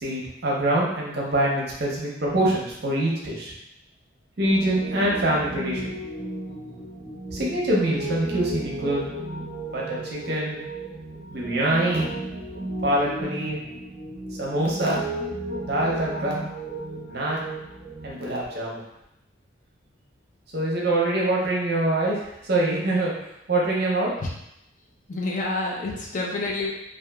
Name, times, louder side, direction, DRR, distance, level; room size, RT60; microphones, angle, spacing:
voice 1, 0.0-3.5 4.4-5.8 7.3-9.0 9.7-10.6 11.3-12.1 12.8-13.6 14.4-15.0 15.6-16.4 17.1-17.4 18.0-18.8 20.5-23.1 23.5-24.1, right 1 dB, 55° right, -4 dB, 0.6 m, -24 dB
Piano, 4.4-18.1, right 1 dB, 25° right, 0.8 m, -34 dB
voice 2, 25.1-26.7, left 2 dB, 40° left, -2 dB, 0.4 m, -28 dB
2.8 x 2.4 x 2.3 m, 0.83 s
head